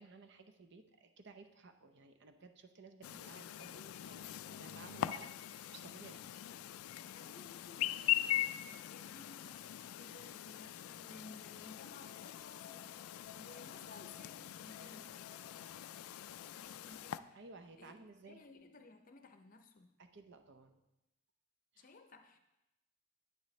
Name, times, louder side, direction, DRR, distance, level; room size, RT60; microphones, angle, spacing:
voice 1, 0.0-5.3 5.7-6.2 17.3-18.5 20.0-20.8 21.7-21.9, right 3 dB, 55° right, 7 dB, 0.6 m, -56 dB
Chirp tweet, 3.0-17.2, left 12 dB, 80° left, 0.3 m, -42 dB
voice 2, 3.6-5.2 6.4-6.7 7.1-15.2 16.5-17.4 17.8-18.0 18.2-19.9 21.8-22.5, left 3 dB, 40° left, 7 dB, 0.6 m, -58 dB
9.2 x 9.0 x 3.2 m, 0.93 s
head